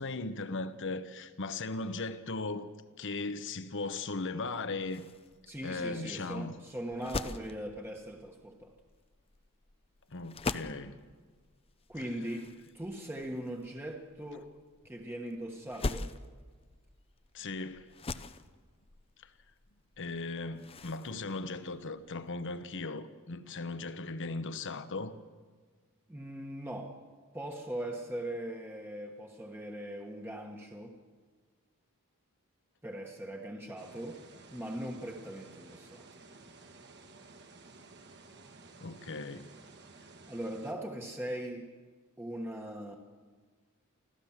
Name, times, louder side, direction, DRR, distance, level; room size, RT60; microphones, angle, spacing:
voice 1, 0.0-2.7 3.0-5.0 5.6-6.5 10.1-11.0 17.3-17.9 19.2-19.3 20.0-25.2 38.8-39.5, left 3 dB, 55° left, 1.0 m, -37 dB
sound 1, 4.4-22.4, left 3 dB, 25° left, 0.6 m, -44 dB
voice 2, 5.5-8.7 11.9-14.5 14.8-16.1 26.1-27.0 27.3-30.9 32.8-34.2 34.5-36.1 40.3-41.7 42.2-43.0, right 1 dB, 10° right, 1.3 m, -40 dB
sound 2, 33.8-40.7, right 3 dB, 50° right, 1.9 m, -54 dB
25.5 x 15.0 x 7.4 m
head